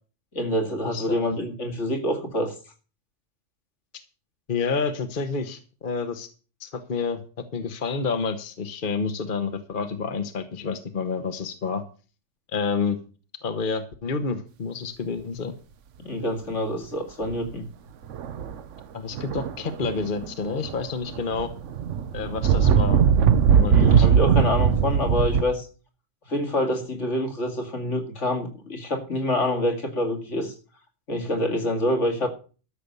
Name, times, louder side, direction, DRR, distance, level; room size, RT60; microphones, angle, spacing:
voice 1, 0.3-2.5 16.0-17.7 23.6-25.7 26.3-30.5 31.1-32.3, left 1 dB, 70° left, 4 dB, 2.6 m, -26 dB
voice 2, 0.8-1.4 4.5-6.3 6.6-7.2 7.5-11.8 12.5-13.0 13.4-15.5 18.9-21.5 22.1-23.0 23.5-24.1, left 5 dB, 45° left, 9 dB, 1.2 m, -29 dB
sound 1, 17.2-17.5 18.1-18.6 19.1-20.3 20.6-25.4, right 7 dB, 80° right, 1.1 m, -20 dB
13.0 x 6.8 x 6.8 m, 0.37 s
omnidirectional pair, 1.3 m